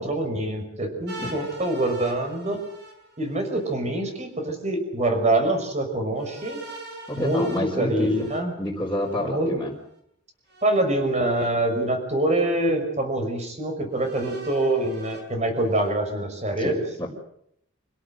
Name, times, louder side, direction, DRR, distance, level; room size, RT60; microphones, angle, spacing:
voice 1, 0.0-2.6 3.2-6.6 7.2-8.6 9.2-9.5 10.6-16.8, right 1 dB, 35° right, 5 dB, 5.8 m, -25 dB
sound 1, 1.1-3.7 6.2-9.2 10.5-11.4 12.2-12.3 13.9-15.9, right 2 dB, 55° right, 7.1 m, -43 dB
voice 2, 7.1-8.3 8.6-9.8 16.6-17.1, left 1 dB, 10° left, -6 dB, 4.6 m, -28 dB
27.5 x 17.5 x 7.9 m, 0.71 s
head